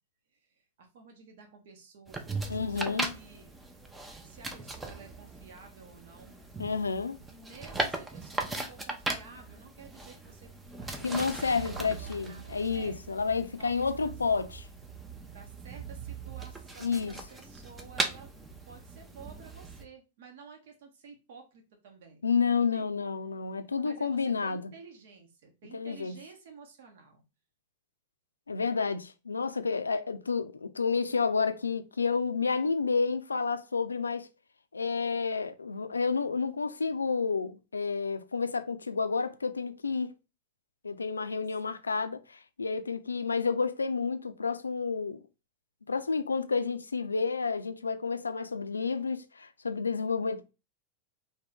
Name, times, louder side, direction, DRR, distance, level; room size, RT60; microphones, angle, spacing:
voice 1, 0.3-3.6 4.2-6.4 7.3-10.5 10.8-13.0 13.6-14.1 15.3-18.3 18.7-22.8 23.5-27.2 41.6-41.7, right 5 dB, 55° right, 1.0 m, -52 dB
sound 1, 2.1-19.8, right 2 dB, 10° right, 0.6 m, -39 dB
voice 2, 2.5-3.1 6.6-7.2 11.0-14.7 16.8-17.1 22.2-24.7 25.7-26.2 28.5-34.3 34.7-40.1 40.8-45.2 45.9-50.5, left 5 dB, 75° left, 0.4 m, -30 dB
3.6 x 2.9 x 3.4 m
figure-of-eight pair, 90°, 0 cm